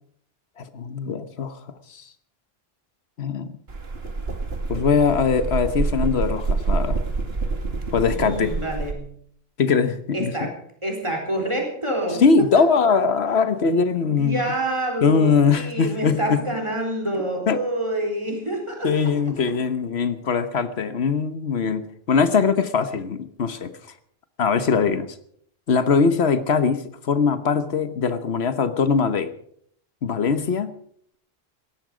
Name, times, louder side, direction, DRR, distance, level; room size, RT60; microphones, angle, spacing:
voice 1, 0.6-1.6 1.9-2.0 3.2-3.6 4.7-7.0 7.9-8.5 9.6-10.5 12.2-14.4 15.0-16.4 17.5-17.6 18.8-23.7 24.4-25.1 25.7-29.3 30.0-30.7, left 5 dB, 85° left, 11 dB, 1.3 m, -21 dB
sound 1, 3.7-8.9, right 3 dB, 70° right, 1.8 m, -27 dB
voice 2, 8.1-9.2 10.1-12.5 14.0-19.1, right 1 dB, 30° right, 2 dB, 4.3 m, -27 dB
18.0 x 14.0 x 5.0 m, 0.64 s
omnidirectional pair, 1.1 m